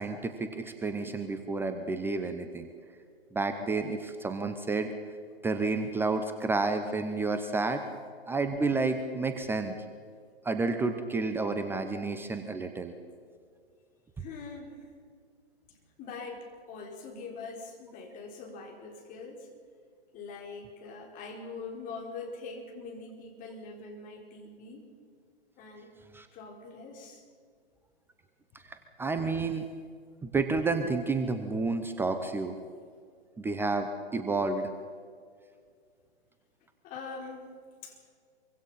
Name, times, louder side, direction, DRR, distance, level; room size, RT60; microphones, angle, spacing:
voice 1, 0.0-2.7 3.3-4.9 5.4-7.8 8.3-9.7 10.4-12.9 26.1-26.3 28.7-29.7 30.2-32.6 33.4-34.7, right 3 dB, 5° right, 7 dB, 0.8 m, -30 dB
voice 2, 14.2-14.9 15.7-19.5 20.1-24.9 25.6-25.9 26.3-27.2 36.8-37.5 37.8-38.0, left 4 dB, 25° left, 1 dB, 4.4 m, -43 dB
24.5 x 24.0 x 5.7 m, 2.1 s
figure-of-eight pair, 125°, 33 cm